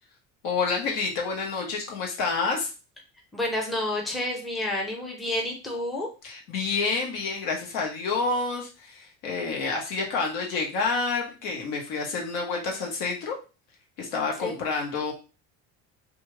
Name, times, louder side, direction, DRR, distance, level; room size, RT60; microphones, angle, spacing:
voice 1, 0.4-2.7 6.2-13.3 14.0-15.1, left 4 dB, 75° left, 0 dB, 1.2 m, -28 dB
voice 2, 3.3-6.1 14.4-14.6, left 1 dB, ahead, -1 dB, 0.6 m, -29 dB
2.7 x 2.5 x 3.1 m, 0.32 s
cardioid pair, 130°, 35 cm